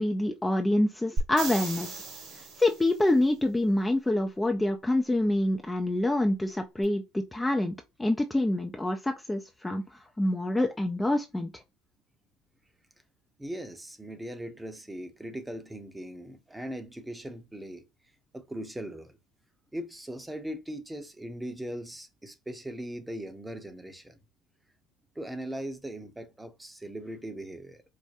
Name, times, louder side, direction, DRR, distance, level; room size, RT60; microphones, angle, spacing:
voice 1, 0.0-2.0 2.6-7.7 8.0-9.8 10.2-11.5, left 1 dB, 10° left, 0.5 m, -26 dB
sound 1, 1.2-3.0 6.8-6.9, right 2 dB, 60° right, 2.0 m, -35 dB
voice 2, 13.4-17.9 18.3-19.2 19.7-24.2 25.1-27.8, right 1 dB, 10° right, 0.8 m, -39 dB
4.8 x 2.1 x 2.6 m
supercardioid pair, 80°, 0 cm